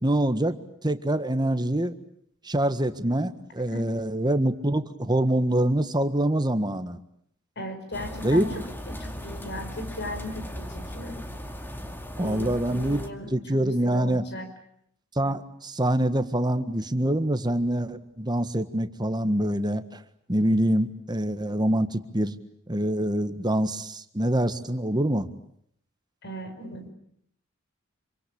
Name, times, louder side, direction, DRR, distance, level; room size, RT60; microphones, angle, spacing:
voice 1, 0.0-2.0 2.4-7.0 8.2-8.5 12.2-13.0 13.3-14.2 15.1-20.0 20.3-22.3 22.7-25.3, right 1 dB, 20° right, 10 dB, 1.6 m, -25 dB
voice 2, 7.6-11.2 12.2-14.5 26.2-26.9, left 1 dB, 55° left, 8 dB, 5.7 m, -37 dB
sound 1, 7.9-13.1, equal, 10° left, 2.3 m, -37 dB
27.0 x 25.0 x 8.7 m, 0.70 s
head